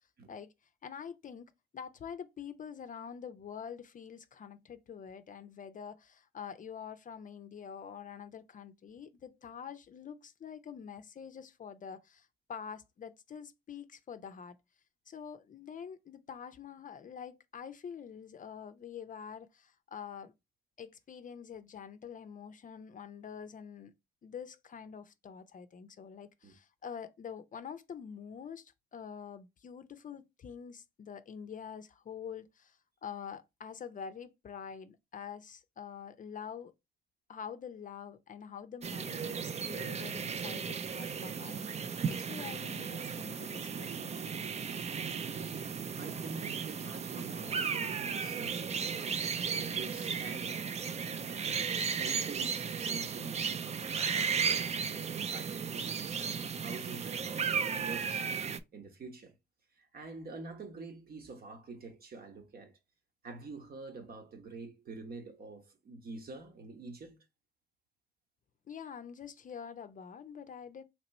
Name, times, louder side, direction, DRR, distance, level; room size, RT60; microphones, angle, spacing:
voice 1, 0.8-14.6 15.1-20.3 20.8-23.9 24.2-36.7 37.3-41.8 42.1-44.3 68.7-70.8, left 7 dB, 40° left, 0.5 m, -46 dB
sound 1, 38.8-58.6, right 6 dB, 35° right, 0.4 m, -35 dB
voice 2, 45.1-50.7 51.3-58.3 58.7-59.3 59.7-62.7 63.2-67.2, right 3 dB, 50° right, 1.1 m, -47 dB
3.0 x 2.9 x 4.2 m
cardioid pair, 90°, 20 cm